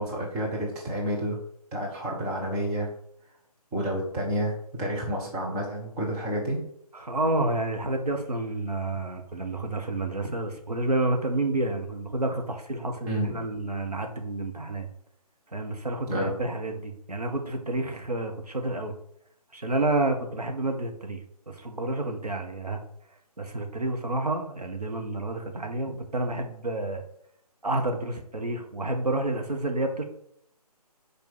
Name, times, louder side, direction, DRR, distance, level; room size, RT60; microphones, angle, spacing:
voice 1, 0.0-1.4 1.7-2.9 3.7-6.6 13.0-13.4 16.1-16.4, equal, 5° right, -4 dB, 0.5 m, -29 dB
voice 2, 6.9-14.9 15.5-18.9 19.5-21.2 21.5-22.8 23.4-27.0 27.6-30.0, right 2 dB, 75° right, 3 dB, 1.7 m, -29 dB
5.7 x 4.5 x 6.3 m, 0.71 s
figure-of-eight pair, 150°, 20 cm